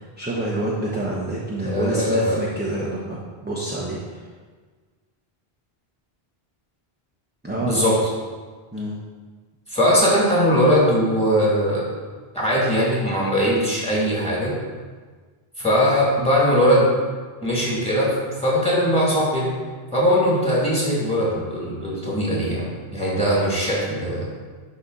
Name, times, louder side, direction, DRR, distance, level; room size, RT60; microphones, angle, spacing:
voice 1, 0.0-3.2 3.4-4.3 7.4-8.0 8.7-9.0, right 1 dB, 10° right, -5 dB, 0.8 m, -27 dB
voice 2, 1.6-2.4 7.6-8.0 9.7-11.9 12.3-14.6 15.6-16.9 17.4-18.2 18.4-19.5 19.9-24.3, equal, 5° left, -6 dB, 2.4 m, -20 dB
11.5 x 4.2 x 4.1 m, 1.5 s
omnidirectional pair, 1.0 m